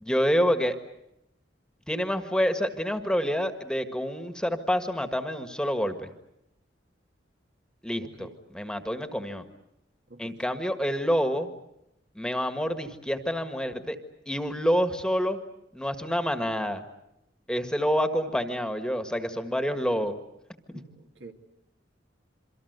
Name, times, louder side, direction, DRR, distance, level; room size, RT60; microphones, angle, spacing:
voice 1, 0.0-0.8 1.9-6.1 7.8-8.3 8.5-9.4 10.2-11.5 12.1-14.0 14.3-15.4 15.7-16.8 17.5-20.2 20.7-20.8, equal, 5° left, 8 dB, 1.6 m, -27 dB
voice 2, 8.0-8.4 10.1-10.4 20.7-21.3, right 2 dB, 70° right, 4 dB, 2.5 m, -47 dB
27.5 x 24.0 x 8.1 m, 0.84 s
head